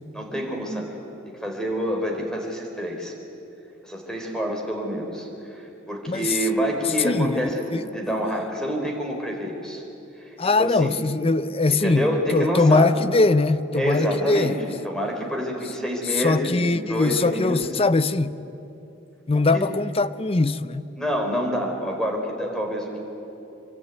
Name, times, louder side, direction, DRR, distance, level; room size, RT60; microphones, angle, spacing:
voice 1, 0.1-1.0 1.3-3.1 3.8-9.8 10.2-11.0 11.7-12.9 13.7-14.6 14.8-17.7 19.3-19.7 21.0-23.0, equal, 5° left, 4.2 m, -27 dB
voice 2, 6.1-6.4 7.0-7.4 7.7-7.8 10.4-14.5 16.1-18.3 19.3-20.9, left 3 dB, 30° left, 0.6 m, -21 dB
25.0 x 23.5 x 9.5 m
head